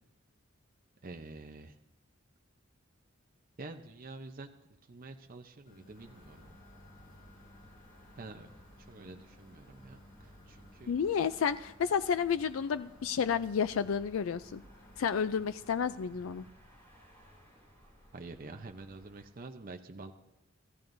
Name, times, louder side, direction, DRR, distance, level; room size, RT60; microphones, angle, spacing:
voice 1, 1.0-1.8 3.6-4.5 4.9-6.6 8.2-8.5 8.9-10.9 18.1-20.1, right 3 dB, 45° right, 5 dB, 0.7 m, -47 dB
sound 1, 5.7-16.5, left 1 dB, 45° left, 2.3 m, -58 dB
sound 2, 5.9-19.3, equal, 10° left, 6.2 m, -60 dB
voice 2, 10.9-14.6 15.0-16.5, left 7 dB, 90° left, 12 dB, 0.4 m, -31 dB
26.0 x 14.5 x 2.6 m, 0.93 s
head